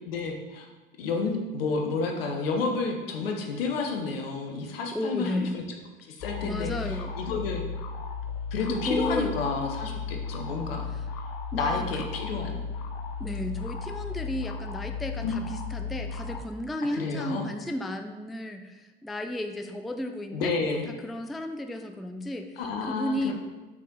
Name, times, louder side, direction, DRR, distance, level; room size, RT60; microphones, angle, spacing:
voice 1, 0.1-0.7 1.0-5.6 6.1-7.6 8.5-10.8 11.5-12.6 15.2-15.3 16.9-17.5 20.3-20.9 22.6-23.3, left 4 dB, 75° left, 2 dB, 1.1 m, -30 dB
voice 2, 4.9-5.5 6.4-7.1 8.7-9.3 10.9-11.1 11.5-12.0 13.2-20.5 21.0-22.6 22.9-23.3, left 1 dB, ahead, 6 dB, 0.3 m, -33 dB
sound 1, 6.2-16.4, left 5 dB, 60° left, 0.8 m, -35 dB
6.0 x 4.5 x 3.9 m, 1.2 s
hypercardioid pair, 75°, 29 cm